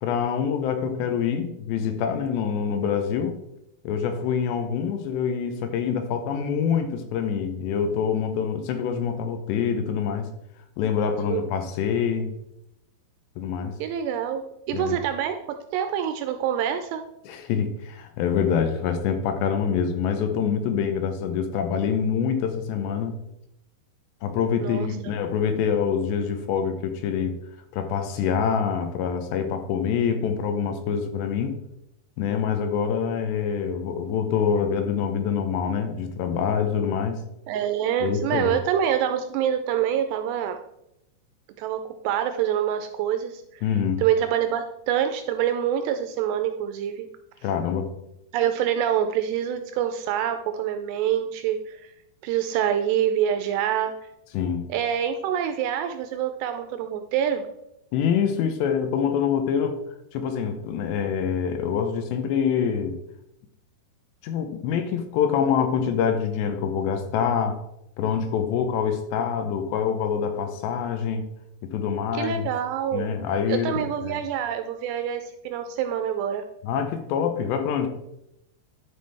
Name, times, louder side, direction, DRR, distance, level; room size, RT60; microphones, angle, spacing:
voice 1, 0.0-3.4 3.8-10.3 10.8-12.3 13.4-13.7 14.7-15.0 17.3-23.2 24.2-27.3 27.7-31.6 32.2-37.2 38.0-38.5 43.6-44.0 47.4-47.9 54.3-54.7 57.9-59.8 60.1-63.0 64.2-67.6 68.0-71.2 71.7-72.5 72.9-74.2 76.6-77.9, left 7 dB, 80° left, 7 dB, 2.8 m, -25 dB
voice 2, 13.8-14.4 14.7-15.4 15.7-17.0 24.6-25.1 37.5-40.6 41.6-43.6 44.0-47.1 48.3-51.9 52.2-54.0 54.7-57.5 72.1-73.2 73.5-76.4, right 9 dB, 85° right, 7 dB, 2.5 m, -26 dB
10.5 x 5.9 x 3.4 m, 0.83 s
omnidirectional pair, 5.2 m